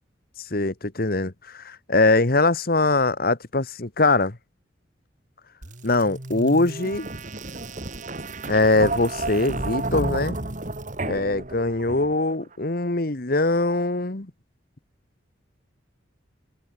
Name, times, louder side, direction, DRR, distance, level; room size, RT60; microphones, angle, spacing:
voice 1, 0.5-4.4 5.8-7.1 8.4-10.4 11.0-14.3, left 2 dB, 50° left, 1.4 m, -22 dB
sound 1, 5.6-12.4, right 2 dB, 40° right, 2.5 m, -32 dB
open air
head